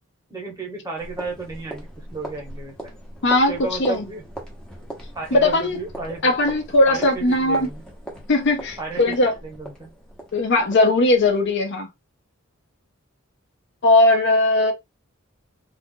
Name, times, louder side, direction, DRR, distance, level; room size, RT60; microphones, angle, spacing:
voice 1, 0.3-2.9 3.5-4.2 5.1-6.3 6.9-7.9 8.8-9.9, right 3 dB, 15° right, 1.1 m, -33 dB
sound 1, 1.0-11.5, right 1 dB, 5° left, 0.9 m, -40 dB
voice 2, 3.2-4.1 5.3-5.8 6.2-7.7 8.3-9.3 10.3-11.9 13.8-14.7, left 2 dB, 55° left, 0.6 m, -18 dB
2.5 x 2.3 x 3.7 m
head